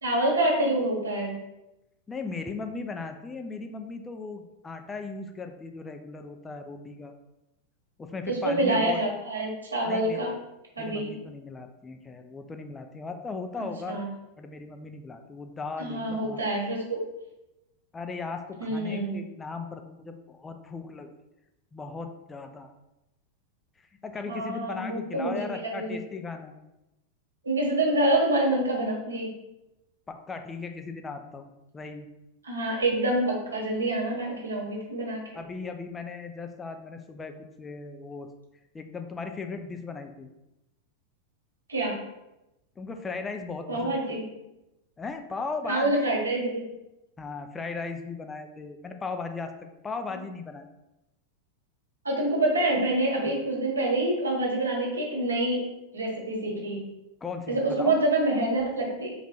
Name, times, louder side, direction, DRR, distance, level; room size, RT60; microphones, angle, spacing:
voice 1, 0.0-1.4 8.3-10.3 10.8-11.1 13.6-14.1 15.8-17.0 18.6-19.2 24.3-26.0 27.4-29.3 32.4-35.2 41.7-41.9 43.7-44.2 45.7-46.6 52.0-55.6 55.9-56.8 57.5-59.1, right 1 dB, 75° right, -1 dB, 1.0 m, -26 dB
voice 2, 2.1-7.1 8.0-9.0 9.9-10.2 10.8-14.0 14.4-16.4 17.9-21.1 21.7-22.7 24.0-26.5 30.1-32.1 35.3-38.3 38.7-40.3 42.8-44.2 45.0-46.1 47.2-49.5 49.8-50.6 53.3-53.4 57.2-58.0, left 4 dB, 15° left, 5 dB, 0.4 m, -37 dB
4.0 x 2.2 x 4.3 m, 0.93 s
figure-of-eight pair, 90°, 0 cm